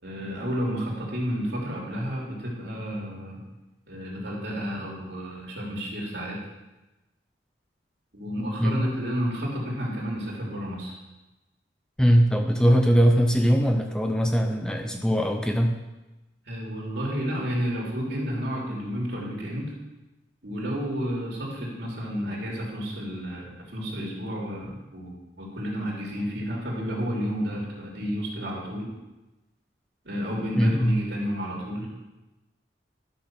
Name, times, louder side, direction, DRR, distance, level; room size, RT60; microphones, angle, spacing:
voice 1, 0.0-3.4 3.9-6.4 8.1-10.9 16.4-19.7 20.4-28.9 30.0-31.9, equal, 65° right, -3 dB, 3.1 m, -31 dB
voice 2, 12.0-15.7 30.6-31.0, equal, 5° left, 3 dB, 0.6 m, -21 dB
12.0 x 6.3 x 5.9 m, 1.0 s
head